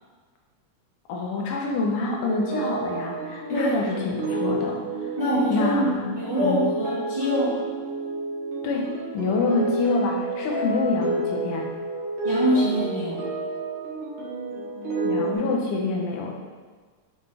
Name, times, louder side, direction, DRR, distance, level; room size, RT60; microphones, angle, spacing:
voice 1, 1.1-4.8 5.5-6.6 8.6-11.7 15.0-16.3, left 3 dB, 90° left, 0 dB, 2.6 m, -26 dB
sound 1, 2.2-15.3, right 2 dB, 70° right, 2.8 m, -30 dB
voice 2, 5.2-7.6 12.2-13.2, equal, 15° right, -10 dB, 1.6 m, -24 dB
8.3 x 5.5 x 3.5 m, 1.4 s
omnidirectional pair, 3.6 m